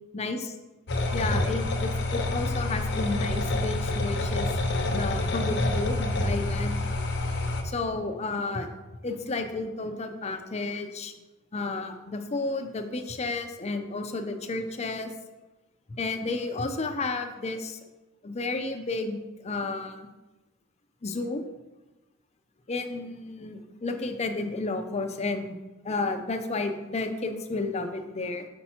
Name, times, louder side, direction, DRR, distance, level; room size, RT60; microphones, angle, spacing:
voice 1, 0.1-0.6 1.1-4.5 4.9-6.8 7.6-8.7 9.0-11.1 11.5-15.1 16.0-17.8 18.2-20.0 21.0-21.4 22.7-25.6 25.8-28.5, left 3 dB, 35° left, 6 dB, 0.6 m, -32 dB
sound 1, 0.9-7.6, left 2 dB, 60° left, 0.8 m, -27 dB
5.6 x 5.2 x 4.3 m, 1.1 s
head